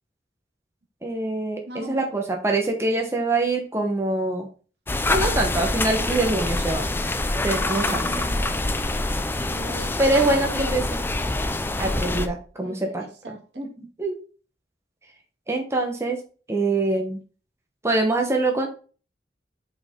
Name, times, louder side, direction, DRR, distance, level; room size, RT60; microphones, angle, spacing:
voice 1, 1.0-4.5 5.1-6.9 7.4-8.1 10.0-11.0 11.8-13.7 14.0-14.2 15.5-16.2 16.5-17.2 17.8-18.7, right 2 dB, 15° right, 2 dB, 1.0 m, -24 dB
voice 2, 1.7-2.2 5.1-5.4 7.5-8.9 9.5-11.2 12.6-13.4, right 2 dB, 70° right, 2 dB, 1.7 m, -39 dB
sound 1, 4.9-12.3, left 2 dB, 15° left, 0.5 m, -25 dB
7.9 x 4.3 x 3.7 m, 0.38 s
head